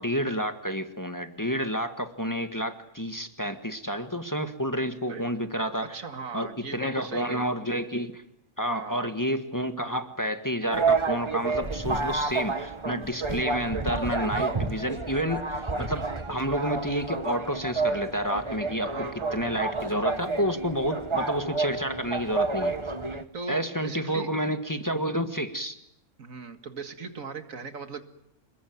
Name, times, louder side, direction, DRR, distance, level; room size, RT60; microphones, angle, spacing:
voice 1, 0.0-6.0 6.3-8.2 8.6-22.8 23.5-25.8, equal, 15° left, 7 dB, 1.6 m, -30 dB
voice 2, 5.8-7.5 8.7-9.2 18.8-19.5 23.3-24.3 26.2-28.0, right 4 dB, 75° right, 8 dB, 2.3 m, -38 dB
sound 1, 10.7-23.2, right 4 dB, 20° right, 1.3 m, -30 dB
28.0 x 21.5 x 9.5 m, 0.81 s
omnidirectional pair, 1.4 m